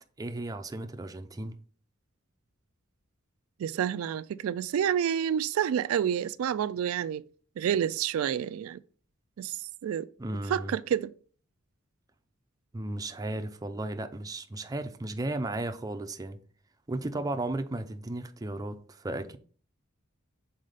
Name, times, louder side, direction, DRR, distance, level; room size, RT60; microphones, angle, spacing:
voice 1, 0.2-1.6 10.2-10.8 12.7-16.4 16.9-19.4, right 2 dB, 15° right, 0.4 m, -35 dB
voice 2, 3.6-7.2 7.6-8.8 9.4-10.1 10.5-11.1, right 9 dB, 80° right, 0.3 m, -29 dB
6.5 x 4.1 x 3.9 m
head